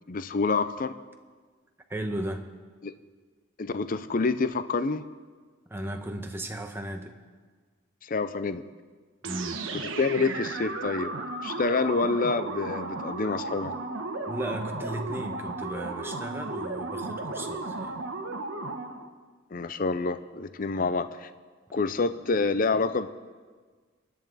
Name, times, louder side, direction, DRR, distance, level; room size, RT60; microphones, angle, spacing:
voice 1, 0.1-1.0 2.8-2.9 3.6-5.0 8.0-8.6 9.8-11.1 11.4-13.7 19.5-21.3 21.7-23.1, left 4 dB, 45° left, 12 dB, 0.5 m, -27 dB
voice 2, 1.9-2.5 5.7-7.1 9.2-9.6 14.2-18.0 20.7-20.9, right 1 dB, 10° right, 4 dB, 1.0 m, -35 dB
sound 1, 9.2-19.1, right 3 dB, 75° right, 1.2 m, -34 dB
27.5 x 10.0 x 4.1 m, 1.5 s
head